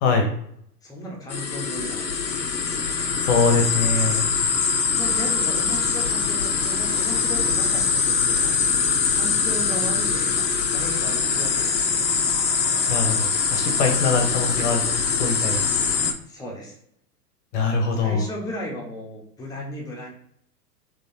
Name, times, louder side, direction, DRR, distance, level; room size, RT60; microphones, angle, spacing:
voice 1, 0.0-0.3 3.3-4.2 12.9-15.6 16.0-16.1 17.5-18.2, left 4 dB, 45° left, 3 dB, 1.0 m, -23 dB
voice 2, 0.8-2.2 4.5-4.7 5.0-8.6 9.1-12.0 16.3-16.7 18.0-20.1, equal, 5° left, -2 dB, 1.1 m, -35 dB
sound 1, 1.3-16.1, left 5 dB, 85° left, 0.7 m, -23 dB
5.0 x 3.1 x 2.8 m, 0.70 s
figure-of-eight pair, 100°, 49 cm